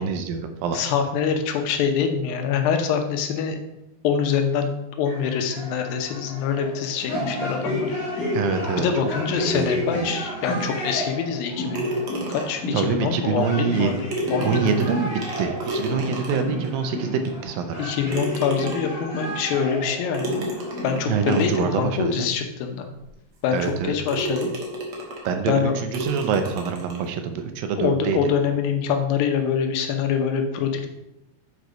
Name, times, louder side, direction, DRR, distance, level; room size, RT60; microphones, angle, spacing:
voice 1, 0.0-0.8 8.3-8.9 9.4-9.7 9.9-10.1 12.7-13.9 14.4-17.8 21.1-22.3 23.5-23.9 25.3-28.2, right 6 dB, 80° right, 7 dB, 2.4 m, -25 dB
voice 2, 0.7-3.6 4.0-4.7 5.0-7.9 8.8-11.9 12.3-14.8 17.8-20.3 20.8-22.9 23.4-24.5 25.5-25.8 27.8-30.9, left 7 dB, 80° left, 5 dB, 2.7 m, -25 dB
sound 1, 5.0-21.9, left 1 dB, 50° left, 1.0 m, -32 dB
sound 2, 11.7-12.7 13.8-13.9 14.1-16.7 17.3-17.4 18.1-19.1 20.1-21.7 22.4-22.5 23.0-23.1 23.6-23.8 24.1-25.4 25.9-27.1, right 1 dB, 55° right, 1.8 m, -31 dB
8.1 x 4.6 x 5.1 m, 0.90 s
omnidirectional pair, 4.1 m